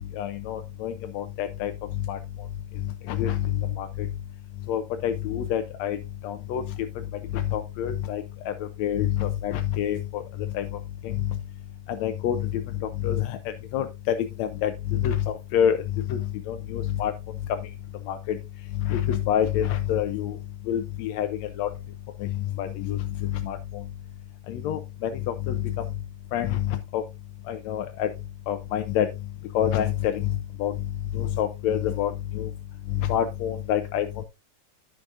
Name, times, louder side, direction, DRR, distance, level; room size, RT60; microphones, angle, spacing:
voice 1, 0.1-1.7 2.1-2.2 3.1-4.1 4.7-6.0 6.2-6.6 7.3-10.2 10.5-11.4 11.9-17.1 18.1-18.4 18.8-20.4 20.7-21.7 22.2-23.8 24.5-25.7 26.3-27.0 27.5-28.1 28.5-29.1 29.5-30.7 31.1-32.5 32.9-34.2, left 10 dB, 75° left, 7 dB, 1.9 m, -27 dB
14.5 x 5.1 x 2.5 m, 0.25 s
omnidirectional pair, 3.3 m